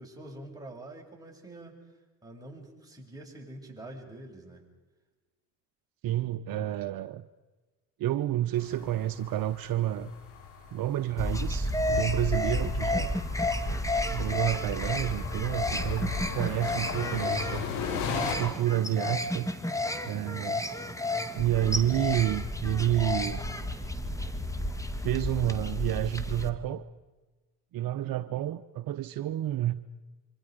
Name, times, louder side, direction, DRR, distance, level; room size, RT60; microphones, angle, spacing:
voice 1, 0.0-1.8 2.2-4.6 12.7-13.1, right 1 dB, 10° right, -1 dB, 7.4 m, -45 dB
voice 2, 6.0-7.3 8.0-10.1 10.7-13.2 14.1-17.6 18.3-19.5 20.0-20.6 21.3-23.4 25.0-26.9 27.7-29.8, right 12 dB, 60° right, 11 dB, 0.9 m, -29 dB
sound 1, 8.5-18.3, left 5 dB, 80° left, 4.9 m, -38 dB
sound 2, 11.2-26.5, left 1 dB, 10° left, 2.1 m, -31 dB
26.5 x 25.0 x 5.2 m, 1.2 s
supercardioid pair, 70°, 40 cm